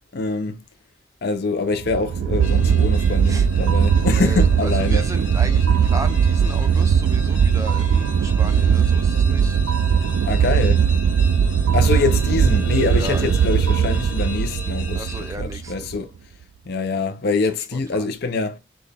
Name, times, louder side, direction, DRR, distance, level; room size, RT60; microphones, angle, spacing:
voice 1, 0.1-0.6 1.2-5.1 10.2-10.8 11.7-16.1 16.7-18.6, left 3 dB, 55° left, 0.6 m, -24 dB
sound 1, 1.8-16.0, right 7 dB, 90° right, 0.3 m, -19 dB
sound 2, 2.4-15.3, left 3 dB, 85° left, 2.0 m, -39 dB
voice 2, 4.1-9.6 10.2-10.6 11.8-12.2 12.9-13.2 14.9-15.9 17.7-18.1, right 1 dB, 15° right, 0.5 m, -35 dB
sound 3, 12.1-16.2, left 4 dB, 20° left, 1.0 m, -40 dB
5.9 x 2.3 x 3.3 m
head